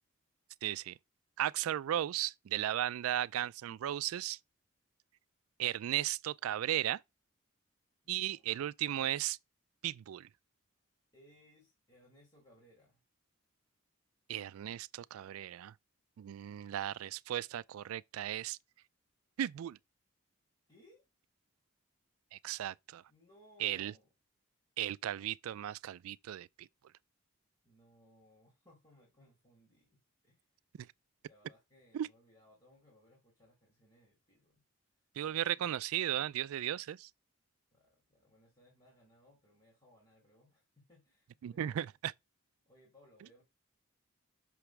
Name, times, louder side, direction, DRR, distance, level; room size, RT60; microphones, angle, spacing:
voice 1, 0.6-0.9 1.4-4.4 5.6-7.0 8.1-9.4 9.8-10.3 14.3-15.7 16.2-18.6 19.4-19.8 22.3-23.0 23.6-23.9 24.8-26.7 30.8-30.9 31.9-32.1 35.2-37.1 41.4-42.1, right 12 dB, 85° right, 0.3 m, -36 dB
voice 2, 8.0-8.7 11.1-13.0 20.7-21.0 23.1-24.1 27.6-30.4 31.3-34.6 35.2-35.7 37.7-41.9 42.7-43.4, left 1 dB, 20° left, 2.4 m, -64 dB
5.9 x 3.3 x 5.8 m
head